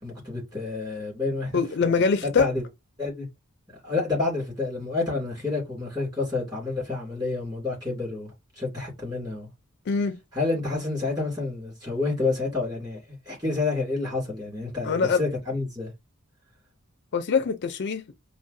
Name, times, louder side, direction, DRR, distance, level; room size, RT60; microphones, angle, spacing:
voice 1, 0.0-1.9 2.2-2.6 3.0-3.3 3.8-9.5 10.3-13.0 13.3-15.9, left 3 dB, 20° right, 2.3 m, -29 dB
voice 2, 1.5-2.5 9.9-10.2 14.8-15.2 17.1-18.0, left 5 dB, 50° left, 0.4 m, -23 dB
5.4 x 2.1 x 2.6 m
head